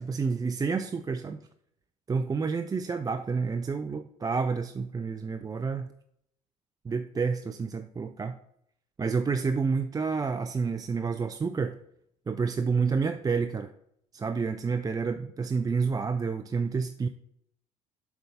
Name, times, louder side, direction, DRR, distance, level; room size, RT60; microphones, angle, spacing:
voice 1, 0.0-1.4 2.1-5.9 6.8-8.4 9.0-11.8 12.3-13.7 14.1-17.1, right 5 dB, 20° right, 0.4 m, -29 dB
7.6 x 3.5 x 5.5 m
hypercardioid pair, 60°, 19 cm